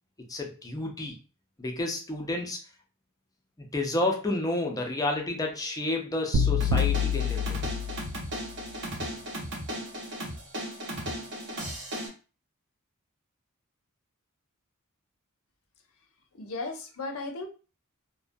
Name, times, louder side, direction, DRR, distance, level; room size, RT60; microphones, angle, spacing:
voice 1, 0.3-1.2 1.6-2.6 3.6-7.6, left 2 dB, 15° left, 1 dB, 0.5 m, -30 dB
sound 1, 6.3-8.4, left 5 dB, 85° right, 0.3 m, -27 dB
sound 2, 6.6-12.1, equal, 55° right, 0.8 m, -36 dB
voice 2, 16.4-17.5, left 3 dB, 65° left, 4 dB, 0.6 m, -35 dB
2.4 x 2.1 x 2.5 m, 0.34 s
head